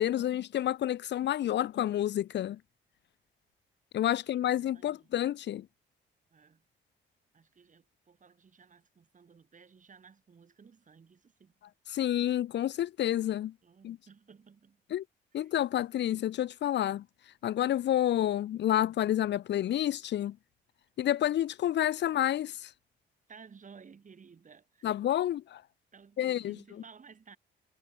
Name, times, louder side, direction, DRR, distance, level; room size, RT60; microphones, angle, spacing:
voice 1, 0.0-2.6 3.9-5.7 11.9-13.5 13.8-14.0 14.9-15.0 15.3-17.0 17.4-20.4 21.0-22.7 24.8-25.6 26.2-26.6, left 12 dB, 60° left, 0.7 m, -29 dB
voice 2, 4.1-5.1 6.3-6.6 7.3-11.5 13.6-14.8 15.4-15.5 23.3-25.0 25.9-27.4, right 6 dB, 40° right, 5.5 m, -56 dB
cardioid pair, 90°, 20 cm